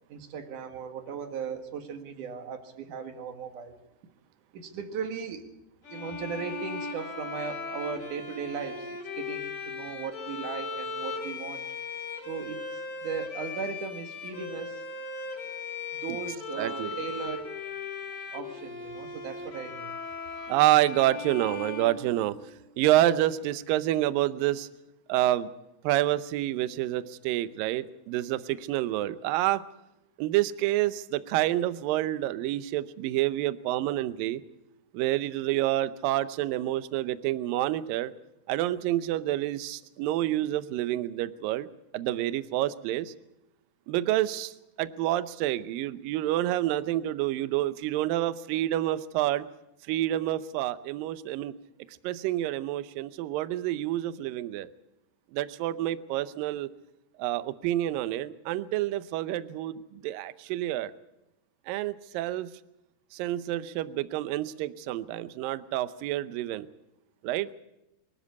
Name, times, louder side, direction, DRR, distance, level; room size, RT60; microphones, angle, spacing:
voice 1, 0.1-3.8 4.5-5.4 5.9-11.6 12.3-14.8 16.0-17.5 18.3-20.0, right 6 dB, 55° right, 7 dB, 2.7 m, -37 dB
sound 1, 5.8-22.7, left 4 dB, 30° left, 4.0 m, -38 dB
voice 2, 16.6-17.0 20.4-22.4 22.8-24.7 25.1-25.5 25.8-29.6 30.2-34.4 34.9-38.1 38.5-41.7 41.9-43.1 43.9-49.5 49.9-51.6 52.0-54.7 55.3-56.7 57.2-60.9 61.7-62.5 63.1-66.7 67.2-67.5, right 14 dB, 80° right, 13 dB, 2.0 m, -28 dB
24.5 x 13.0 x 8.3 m, 0.90 s
omnidirectional pair, 5.1 m